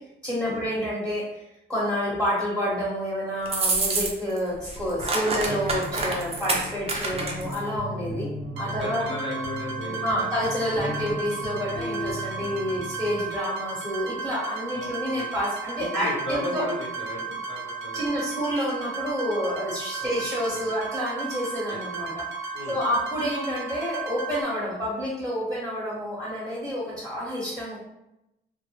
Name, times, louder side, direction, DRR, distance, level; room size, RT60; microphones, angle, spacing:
voice 1, 0.2-1.4 1.7-8.3 8.6-9.0 10.0-16.6 17.9-22.2 22.7-27.8, equal, 5° left, -9 dB, 1.0 m, -29 dB
sound 1, 3.5-4.4 4.7-7.6, right 3 dB, 30° right, 0.5 m, -27 dB
voice 2, 4.9-5.4 8.8-10.1 14.7-15.3 15.8-18.1 20.0-20.2 20.5-20.6 21.7-21.8 22.5-22.8, left 1 dB, 70° left, -5 dB, 1.0 m, -36 dB
sound 2, 5.4-13.2, left 1 dB, 30° left, 0.6 m, -36 dB
sound 3, 8.6-24.4, right 4 dB, 75° right, 0.7 m, -35 dB
2.1 x 2.1 x 3.0 m, 0.88 s
cardioid pair, 90°, 20 cm